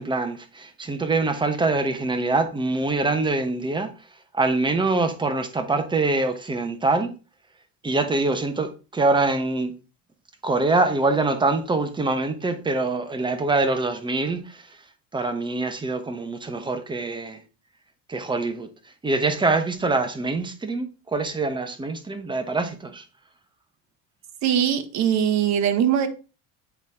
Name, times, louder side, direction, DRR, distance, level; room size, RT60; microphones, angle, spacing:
voice 1, 0.0-3.9 4.3-7.1 7.8-9.7 10.4-14.8 15.1-17.4 18.1-18.7 19.0-23.0, right 3 dB, 15° right, 1.0 m, -24 dB
voice 2, 24.4-26.1, right 9 dB, 50° right, 1.2 m, -21 dB
8.2 x 4.2 x 3.5 m
cardioid pair, 120°, 35 cm